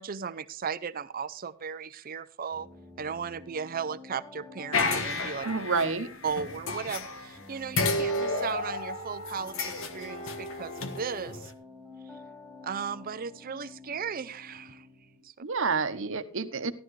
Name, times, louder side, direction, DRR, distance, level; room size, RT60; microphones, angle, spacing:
voice 1, 0.0-2.7 3.0-5.5 6.2-11.5 12.6-14.9 15.2-15.3, right 6 dB, 40° right, 15 dB, 0.5 m, -36 dB
sound 1, 2.5-15.2, left 2 dB, 15° left, 5.9 m, -48 dB
sound 2, 4.7-7.4 7.7-11.5, left 2 dB, 65° left, 1.3 m, -32 dB
voice 2, 5.4-6.1 15.4-16.7, right 4 dB, 60° right, 9 dB, 1.0 m, -28 dB
13.5 x 12.0 x 3.2 m, 0.39 s
head